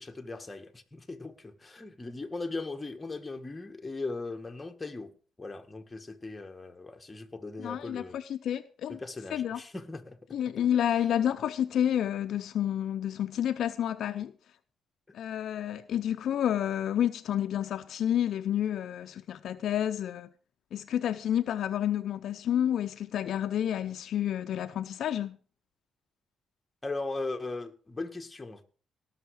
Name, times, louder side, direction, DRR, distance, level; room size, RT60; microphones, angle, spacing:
voice 1, 0.0-5.1 5.4-8.2 8.9-10.2 26.8-28.6, left 3 dB, 20° left, 1.8 m, -38 dB
voice 2, 7.6-9.0 9.3-9.6 10.3-14.3 15.1-20.3 20.7-25.4, left 10 dB, 70° left, 0.6 m, -30 dB
18.0 x 6.6 x 5.0 m
cardioid pair, 90°, 0 cm